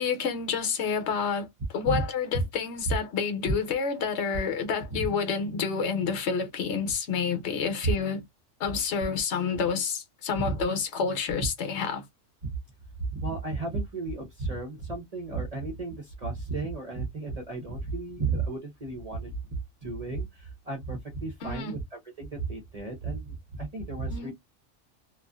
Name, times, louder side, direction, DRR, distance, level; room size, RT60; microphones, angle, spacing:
voice 1, 0.0-1.5 1.7-8.2 8.6-12.0 21.4-21.8 24.1-24.3, left 6 dB, 65° left, 1.0 m, -29 dB
voice 2, 13.0-24.3, right 3 dB, 40° right, 0.6 m, -33 dB
2.5 x 2.4 x 2.3 m
omnidirectional pair, 1.4 m